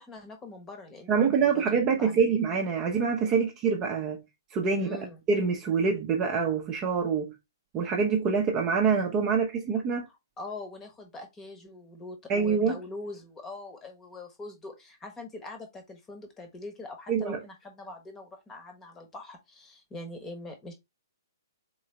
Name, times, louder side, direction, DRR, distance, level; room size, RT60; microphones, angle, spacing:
voice 1, 0.0-1.3 1.5-2.2 4.8-5.2 10.4-20.7, left 2 dB, 15° left, 1.2 m, -43 dB
voice 2, 1.1-4.2 4.5-5.0 5.3-7.3 7.7-10.1 12.3-12.8 17.1-17.4, right 5 dB, 20° right, 0.8 m, -25 dB
3.9 x 3.8 x 3.2 m
figure-of-eight pair, 120°, 2 cm